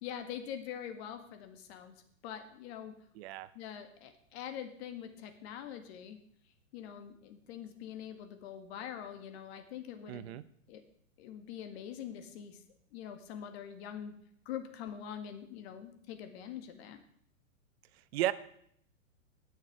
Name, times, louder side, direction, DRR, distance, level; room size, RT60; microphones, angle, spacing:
voice 1, 0.0-2.9 3.5-6.2 6.7-10.3 10.7-10.8 11.2-12.6 12.9-14.1 14.5-17.0, left 9 dB, 50° left, 7 dB, 1.9 m, -44 dB
voice 2, 3.2-3.5 10.1-10.4 18.1-18.3, right 14 dB, 50° right, 16 dB, 0.6 m, -33 dB
18.0 x 6.5 x 4.8 m, 0.67 s
hypercardioid pair, 130°, 40 cm